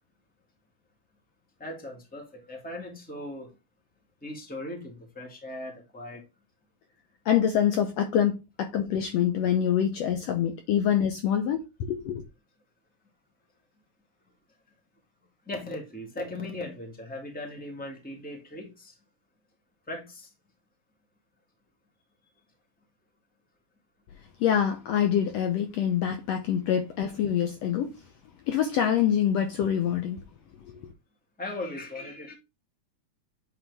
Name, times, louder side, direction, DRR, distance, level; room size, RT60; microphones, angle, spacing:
voice 1, 1.6-3.5 4.2-6.2 15.4-19.0 19.9-20.3 31.4-32.3, left 1 dB, 5° left, 1.5 m, -38 dB
voice 2, 7.2-12.2 24.4-28.0 28.5-30.2 30.7-30.9, left 9 dB, 75° left, 1.7 m, -25 dB
8.6 x 4.2 x 3.4 m
omnidirectional pair, 3.5 m